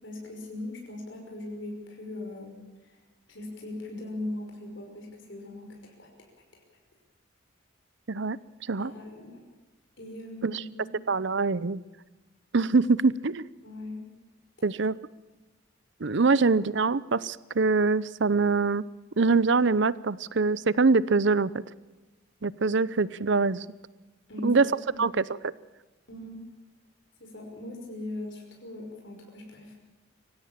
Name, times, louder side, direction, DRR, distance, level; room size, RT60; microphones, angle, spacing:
voice 1, 0.0-3.0 3.3-6.3 6.5-6.6 8.8-9.4 10.0-11.0 13.6-14.0 16.3-16.4 24.3-25.1 26.1-26.4 27.2-29.8, left 1 dB, 60° left, 1 dB, 5.7 m, -40 dB
voice 2, 11.1-11.8 12.5-13.5 14.6-15.0 16.0-18.8 19.2-21.5 22.4-23.7 24.4-24.7 25.0-25.5, right 4 dB, 60° right, 19 dB, 0.7 m, -24 dB
25.0 x 17.0 x 7.5 m, 1.2 s
head